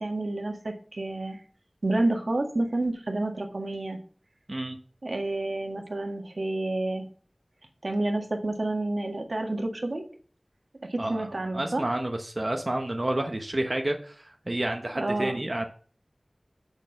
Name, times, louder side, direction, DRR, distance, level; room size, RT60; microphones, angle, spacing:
voice 1, 0.0-1.4 1.8-4.0 5.0-7.0 7.8-10.1 10.9-11.8 15.0-15.4, right 2 dB, 80° right, 3 dB, 1.6 m, -29 dB
voice 2, 11.0-15.6, right 1 dB, 50° right, 3 dB, 1.0 m, -30 dB
6.6 x 6.4 x 6.5 m, 0.43 s
wide cardioid pair, 40°, 0 cm